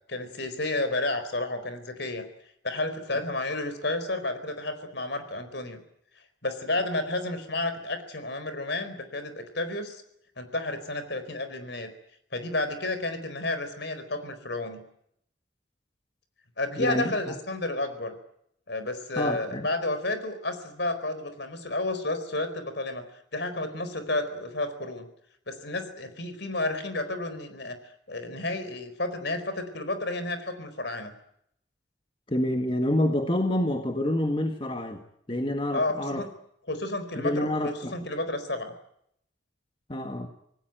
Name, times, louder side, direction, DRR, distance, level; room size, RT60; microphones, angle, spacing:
voice 1, 0.1-2.2 2.6-5.8 6.4-10.0 10.4-11.9 12.3-14.8 16.6-18.2 18.7-23.0 23.3-25.1 25.5-27.8 28.1-31.1 35.7-36.3 36.7-38.7, left 2 dB, 60° left, 10 dB, 4.4 m, -31 dB
voice 2, 16.8-17.3 19.2-19.7 32.3-35.0 35.3-36.2 37.1-37.9 39.9-40.3, left 1 dB, 25° left, 5 dB, 1.8 m, -27 dB
26.5 x 18.5 x 9.2 m, 0.73 s
head